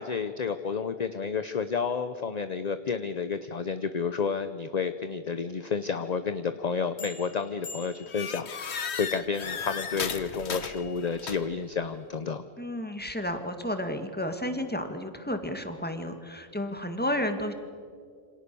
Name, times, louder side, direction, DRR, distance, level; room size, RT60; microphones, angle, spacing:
voice 1, 0.0-12.4, left 5 dB, 40° left, 10 dB, 0.9 m, -31 dB
sound 1, 7.0-7.3 7.6-11.7, left 6 dB, 80° left, 1.4 m, -36 dB
voice 2, 12.6-17.5, left 1 dB, 10° left, 6 dB, 2.0 m, -32 dB
28.0 x 25.5 x 6.9 m, 2.1 s
omnidirectional pair, 1.1 m